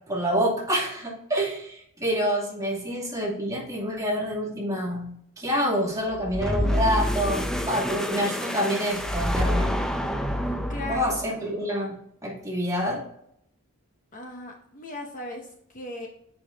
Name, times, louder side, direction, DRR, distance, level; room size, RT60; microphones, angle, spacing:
voice 1, 0.1-5.1 5.4-9.7 10.8-12.0 12.2-13.1, equal, 15° right, -3 dB, 2.2 m, -27 dB
sound 1, 6.1-11.4, equal, 5° left, 0.5 m, -27 dB
voice 2, 10.4-11.2 14.1-16.1, left 1 dB, 35° left, 2 dB, 0.9 m, -38 dB
7.0 x 5.0 x 3.4 m, 0.71 s
head